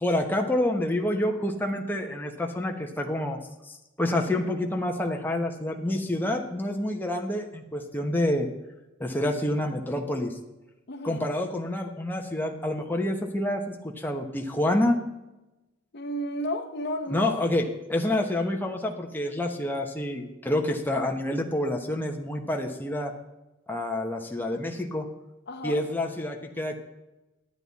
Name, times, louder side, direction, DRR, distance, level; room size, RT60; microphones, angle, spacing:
voice 1, 0.0-3.4 4.0-8.5 9.0-10.3 11.0-15.0 17.1-23.1 23.7-25.1 25.6-26.8, left 1 dB, 10° left, 1.0 m, -28 dB
voice 2, 10.9-11.2 15.9-17.3 25.5-25.8, left 1 dB, 55° left, 1.0 m, -32 dB
11.5 x 9.0 x 4.1 m
head